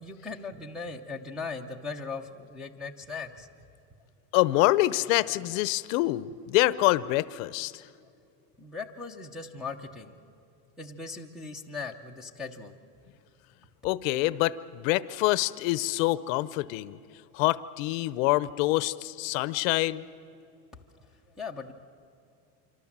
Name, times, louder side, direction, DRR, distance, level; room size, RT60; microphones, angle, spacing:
voice 1, 0.0-3.5 8.6-10.2 10.8-12.7 20.7-20.8 21.4-21.7, left 4 dB, ahead, -3 dB, 0.7 m, -39 dB
voice 2, 4.3-7.8 13.8-17.0 17.3-20.0, left 18 dB, 60° left, 17 dB, 0.7 m, -26 dB
26.0 x 25.0 x 7.3 m, 2.5 s
cardioid pair, 175°, 44 cm